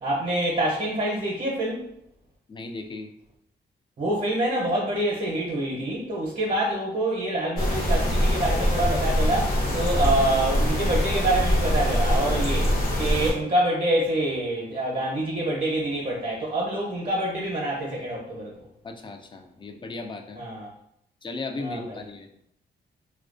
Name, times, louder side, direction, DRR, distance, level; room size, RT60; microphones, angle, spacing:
voice 1, 0.0-1.9 4.0-12.7 13.0-18.7 20.4-20.7 21.6-22.0, right 1 dB, 45° right, -2 dB, 0.6 m, -26 dB
voice 2, 2.5-3.1 18.8-20.4 21.2-22.3, left 3 dB, 25° left, 5 dB, 0.3 m, -36 dB
sound 1, 7.6-13.3, equal, 50° left, 0.8 m, -23 dB
2.3 x 2.2 x 2.4 m, 0.75 s
cardioid pair, 85°, 19 cm